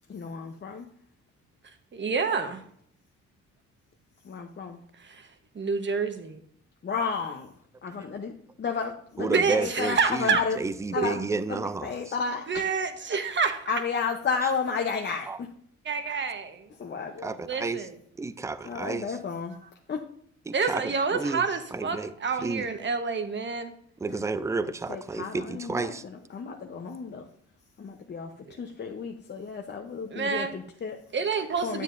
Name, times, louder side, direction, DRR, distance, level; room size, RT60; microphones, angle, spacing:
voice 1, 0.1-0.9 4.2-4.8 6.8-7.5 7.8-8.3 8.6-10.6 10.9-11.2 11.5-12.6 13.7-15.5 16.8-17.4 18.6-19.5 19.9-20.0 24.1-24.2 24.9-27.3 27.8-28.3 28.6-31.0 31.6-31.8, left 5 dB, 35° left, 0.8 m, -32 dB
voice 2, 1.9-2.6 5.5-6.4 9.2-10.4 11.0-11.1 12.5-13.6 15.8-16.6 17.4-18.0 20.5-23.7 30.1-30.5 31.1-31.8, right 5 dB, 40° right, 1.1 m, -28 dB
voice 3, 9.2-11.9 15.3-15.4 17.2-17.8 18.2-19.1 20.5-21.5 21.7-22.1 22.4-22.7 24.0-26.0, right 3 dB, 10° right, 0.4 m, -31 dB
9.4 x 7.4 x 2.6 m
cardioid pair, 90°, 30 cm